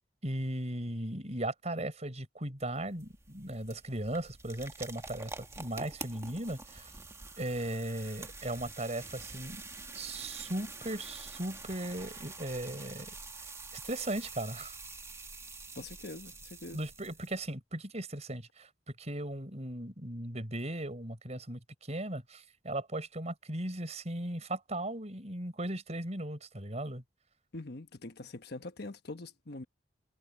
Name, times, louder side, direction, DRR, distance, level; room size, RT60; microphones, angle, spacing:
voice 1, 0.2-6.9 7.4-9.6 9.9-13.1 13.7-14.7 16.7-27.0, right 1 dB, 35° right, 4.7 m, -37 dB
sound 1, 2.6-17.5, right 3 dB, 15° right, 1.8 m, -47 dB
voice 2, 15.7-16.8 27.5-29.6, left 2 dB, 60° left, 1.2 m, -43 dB
head